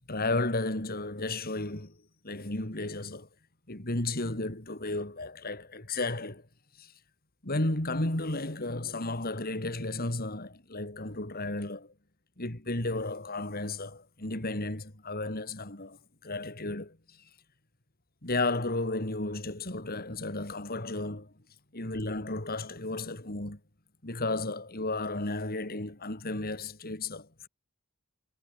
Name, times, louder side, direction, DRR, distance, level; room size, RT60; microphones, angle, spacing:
voice 1, 0.1-1.9 2.2-3.3 3.7-6.5 6.7-7.0 7.4-11.9 12.4-17.3 18.2-21.3 21.7-23.6 24.0-27.5, left 2 dB, 45° left, 3.4 m, -33 dB
head